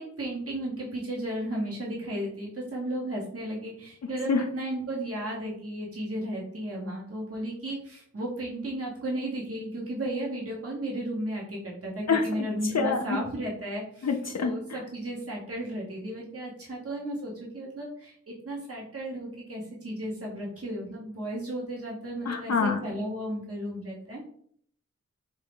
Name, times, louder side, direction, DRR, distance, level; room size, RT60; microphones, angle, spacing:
voice 1, 0.0-14.1 14.4-24.2, right 1 dB, 50° right, -3 dB, 1.0 m, -34 dB
voice 2, 12.6-13.2 14.0-14.8 22.2-22.8, left 5 dB, 60° left, 3 dB, 0.4 m, -26 dB
4.4 x 2.5 x 3.5 m, 0.63 s
wide cardioid pair, 50°, 29 cm